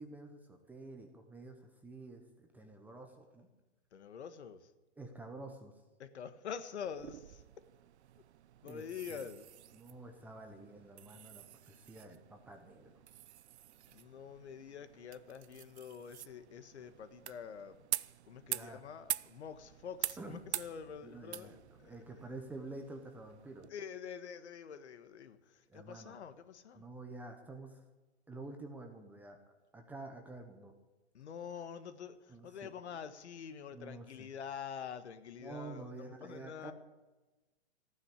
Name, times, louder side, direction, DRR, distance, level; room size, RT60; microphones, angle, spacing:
voice 1, 0.0-3.5 5.0-5.8 8.6-8.8 9.1-9.2 9.7-12.9 18.5-18.8 20.2-20.4 21.0-21.6 21.8-23.7 25.7-26.2 26.7-27.8 28.3-30.7 32.3-32.7 33.7-34.3 35.4-36.7, right 2 dB, 5° right, 0.8 m, -49 dB
voice 2, 3.9-4.7 6.0-7.6 8.6-9.5 13.9-17.9 18.2-22.2 23.7-26.9 31.1-36.7, left 7 dB, 70° left, 1.5 m, -46 dB
sound 1, 6.8-23.7, right 12 dB, 70° right, 0.6 m, -46 dB
15.0 x 9.8 x 8.5 m
hypercardioid pair, 155°, 35 cm